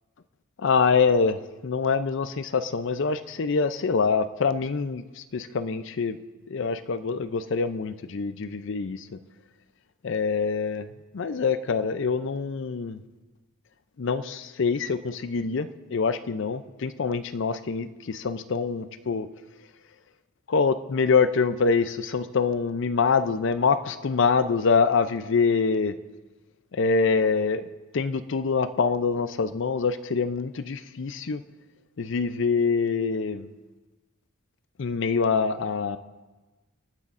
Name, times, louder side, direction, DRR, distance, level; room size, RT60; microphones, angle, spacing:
voice 1, 0.6-6.2 6.5-9.2 10.0-10.9 11.1-13.0 14.0-19.3 20.5-25.9 26.7-27.7 27.9-31.4 32.0-33.5 34.8-36.0, left 5 dB, 55° left, 12 dB, 0.5 m, -25 dB
28.0 x 9.5 x 2.5 m, 1.2 s
head